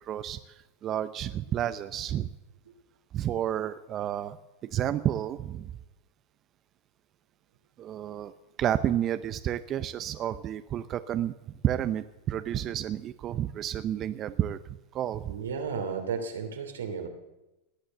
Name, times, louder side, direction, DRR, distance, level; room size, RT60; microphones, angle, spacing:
voice 1, 0.0-2.3 3.1-4.4 4.6-5.7 7.8-8.3 8.6-11.3 11.6-14.6 14.9-15.3, right 11 dB, 35° right, 11 dB, 0.7 m, -30 dB
voice 2, 15.3-17.1, right 6 dB, 85° right, 5 dB, 2.8 m, -33 dB
18.0 x 9.0 x 7.8 m, 1.0 s
hypercardioid pair, 105°, 0 cm